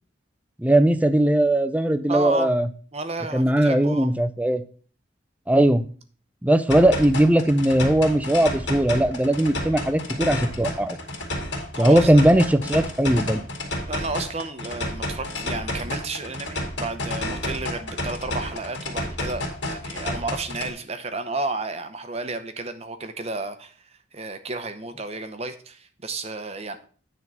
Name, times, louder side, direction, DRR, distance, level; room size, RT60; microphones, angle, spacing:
voice 1, 0.6-2.7 3.3-4.6 5.5-5.8 6.4-11.0 11.8-13.5, right 1 dB, 10° right, 11 dB, 0.5 m, -19 dB
voice 2, 2.1-2.5 2.9-4.1 11.7-12.2 13.9-26.8, right 3 dB, 35° right, 9 dB, 0.8 m, -32 dB
sound 1, 6.7-20.7, left 1 dB, 70° left, 2.4 m, -31 dB
9.6 x 3.7 x 6.0 m, 0.42 s
head